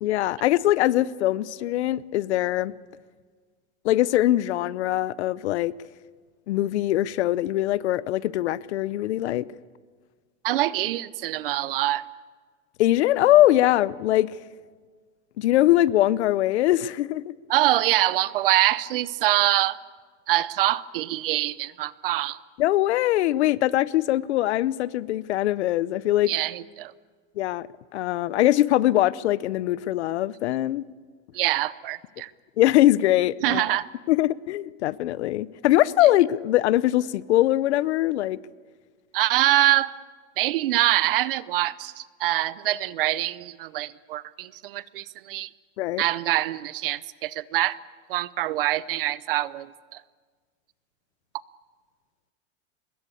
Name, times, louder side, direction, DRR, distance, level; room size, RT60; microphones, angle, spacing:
voice 1, 0.0-2.7 3.8-5.7 6.5-9.5 12.8-14.3 15.4-17.3 22.6-26.3 27.4-27.7 27.9-30.9 32.6-33.8 34.1-38.4 45.8-46.0, left 14 dB, 60° left, 0.8 m, -22 dB
voice 2, 10.4-12.0 17.5-19.8 20.3-22.4 26.3-26.9 31.3-32.3 33.4-33.9 39.1-39.9 40.4-45.5 46.0-47.8 48.1-50.0, right 15 dB, 50° right, 0.7 m, -24 dB
24.0 x 21.5 x 8.6 m
supercardioid pair, 180°, 37 cm